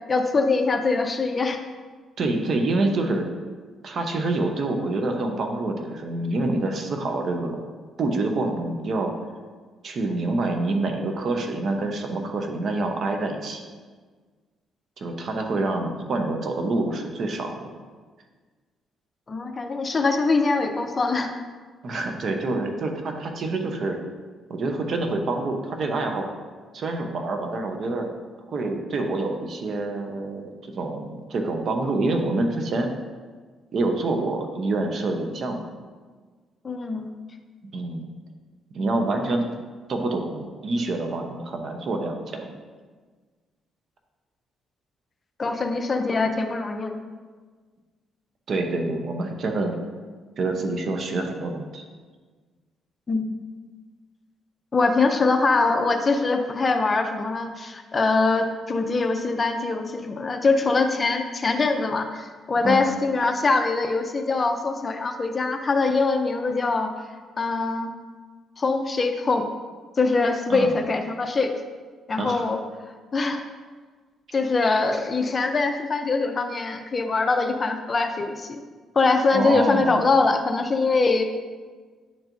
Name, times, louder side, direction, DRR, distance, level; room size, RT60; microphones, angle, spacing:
voice 1, 0.1-1.6 19.3-21.3 36.6-37.1 45.4-47.0 53.1-53.2 54.7-66.9 67.4-67.9 68.6-69.5 70.0-71.5 72.1-72.6 73.1-73.5 74.3-78.6 79.0-81.2, left 3 dB, 35° left, 6 dB, 0.6 m, -23 dB
voice 2, 2.2-3.3 3.8-7.6 8.0-9.1 9.8-13.6 15.0-17.7 21.8-24.0 24.5-26.3 26.7-28.1 28.5-32.9 33.7-35.6 37.7-38.1 38.7-39.4 39.9-42.5 48.5-49.8 50.4-51.8 62.6-62.8 70.5-70.7 72.2-72.4 79.3-80.0, right 2 dB, 55° right, 4 dB, 0.9 m, -26 dB
10.0 x 4.6 x 2.7 m, 1.5 s
cardioid pair, 90°, 0 cm